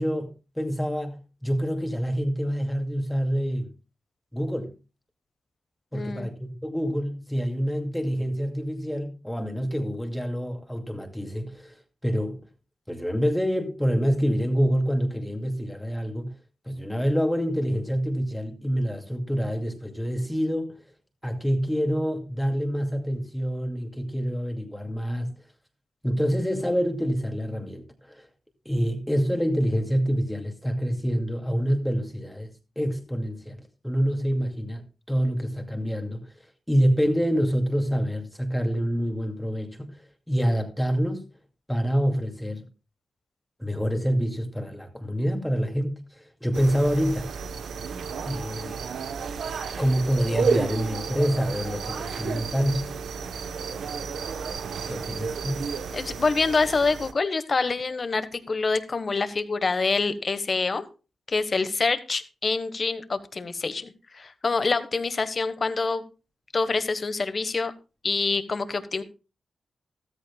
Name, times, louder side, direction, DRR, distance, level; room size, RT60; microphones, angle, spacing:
voice 1, 0.0-3.7 4.3-4.7 5.9-11.7 12.0-12.4 12.9-16.3 16.7-20.8 21.2-25.3 26.0-28.3 28.7-32.5 32.8-33.6 33.8-34.8 35.1-36.3 36.7-39.9 40.3-41.2 41.7-42.6 43.6-47.3 48.2-48.8 49.8-52.9 54.9-55.7, equal, 5° left, 2.4 m, -26 dB
voice 2, 5.9-6.3 55.9-60.8 61.3-66.0 66.5-67.7 68.0-69.0, left 4 dB, 45° left, 1.3 m, -26 dB
sound 1, 46.5-57.1, right 5 dB, 85° right, 1.0 m, -32 dB
14.0 x 13.5 x 2.3 m
cardioid pair, 60°, 0 cm